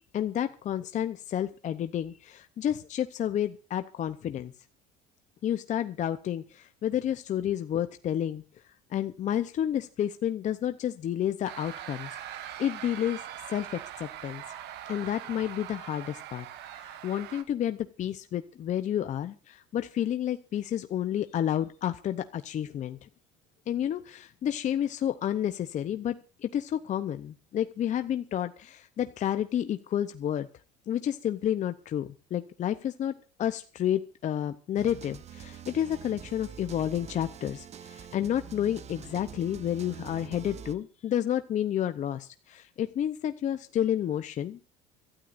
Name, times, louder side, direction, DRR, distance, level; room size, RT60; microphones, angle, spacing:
voice 1, 0.1-4.5 5.4-8.4 8.9-13.2 13.5-13.7 14.0-14.4 14.9-23.1 23.7-26.2 26.4-30.5 30.9-33.1 33.4-44.6, left 10 dB, 40° left, 10 dB, 0.7 m, -30 dB
sound 1, 11.4-17.4, right 11 dB, 65° right, 1.4 m, -42 dB
sound 2, 34.8-40.7, right 8 dB, 35° right, 0.8 m, -45 dB
25.5 x 12.5 x 2.6 m, 0.36 s
supercardioid pair, 105°, 19 cm